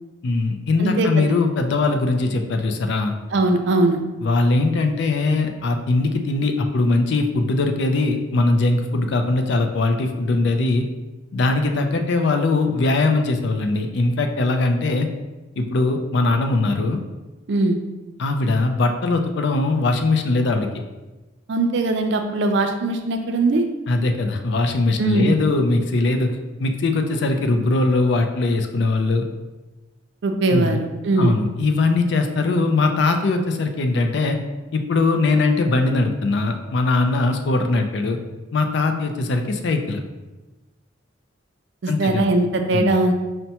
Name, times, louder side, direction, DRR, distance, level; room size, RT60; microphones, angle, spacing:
voice 1, 0.2-3.2 4.2-10.9 11.3-15.1 15.6-17.0 18.2-20.7 23.9-29.3 30.5-30.8 31.2-34.4 34.7-38.2 38.5-40.0 41.9-42.2 42.7-42.9, left 3 dB, 60° left, 5 dB, 0.4 m, -21 dB
voice 2, 0.8-1.2 3.3-4.0 17.5-17.8 21.5-23.6 25.0-25.3 30.2-31.4 41.8-43.1, right 2 dB, 60° right, 5 dB, 0.4 m, -20 dB
5.5 x 2.1 x 2.8 m, 1.1 s
head